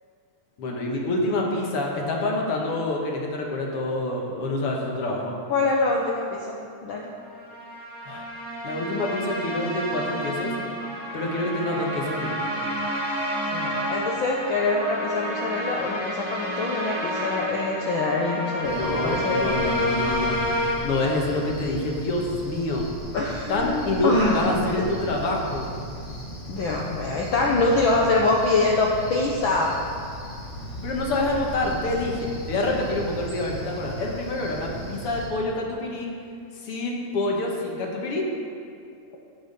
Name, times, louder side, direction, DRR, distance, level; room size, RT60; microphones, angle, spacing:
voice 1, 0.6-5.4 8.1-8.3 8.6-10.5 11.1-12.4 18.7-20.4 20.8-22.8 23.5-25.7 30.8-36.1 36.6-38.2, left 2 dB, 55° left, -1 dB, 1.9 m, -27 dB
voice 2, 5.5-7.1 13.5-19.6 23.1-24.9 26.5-29.8, left 3 dB, 85° left, -2 dB, 1.1 m, -24 dB
sound 1, 7.3-20.7, equal, 5° left, 2.1 m, -30 dB
Cricket, 18.6-35.3, equal, 20° left, 3.0 m, -37 dB
16.0 x 5.7 x 5.3 m, 2.4 s
omnidirectional pair, 3.4 m